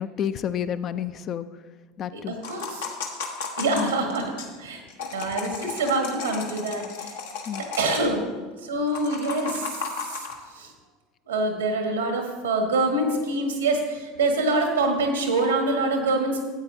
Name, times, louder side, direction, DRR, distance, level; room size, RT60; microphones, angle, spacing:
voice 1, 0.0-1.5 2.0-2.4 3.7-3.9 5.4-5.6 7.5-7.7, left 9 dB, 45° left, 12 dB, 0.4 m, -30 dB
voice 2, 2.1-2.9 3.6-4.3 4.6-4.8 5.1-7.2 7.6-8.2 8.6-10.2 10.5-10.7 11.3-16.4, right 2 dB, 85° right, 3 dB, 1.5 m, -25 dB
sound 1, 2.4-4.5 4.9-8.1 8.9-10.3, left 5 dB, 75° left, 1.1 m, -34 dB
13.0 x 8.7 x 2.7 m, 1.4 s
hypercardioid pair, 75°, 0 cm